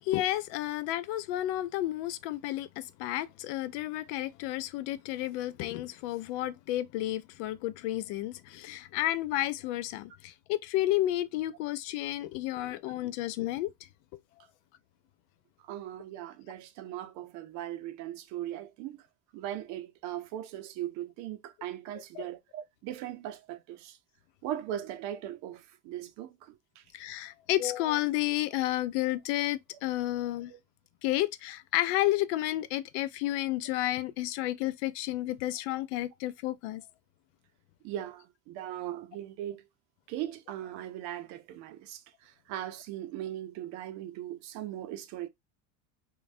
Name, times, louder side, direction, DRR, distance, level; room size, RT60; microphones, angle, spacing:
voice 1, 0.0-13.7 14.1-14.2 22.2-22.3 26.9-30.5 31.0-36.8, left 15 dB, 75° left, 0.5 m, -31 dB
voice 2, 15.6-19.0 19.3-24.0 24.4-26.8 30.5-30.6 37.8-39.6 40.1-45.3, right 12 dB, 55° right, 0.5 m, -39 dB
3.2 x 2.3 x 2.4 m
cardioid pair, 155°, 35 cm